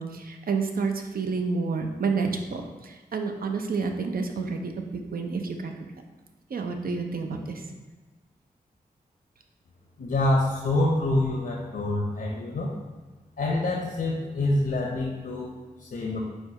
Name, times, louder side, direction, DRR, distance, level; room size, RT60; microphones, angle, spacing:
voice 1, 0.0-5.7 6.5-7.7, right 4 dB, 65° right, 4 dB, 0.5 m, -29 dB
voice 2, 10.0-12.7 13.4-16.2, left 2 dB, 70° left, -2 dB, 0.7 m, -26 dB
4.4 x 2.2 x 4.7 m, 1.2 s
cardioid pair, 45°, 16 cm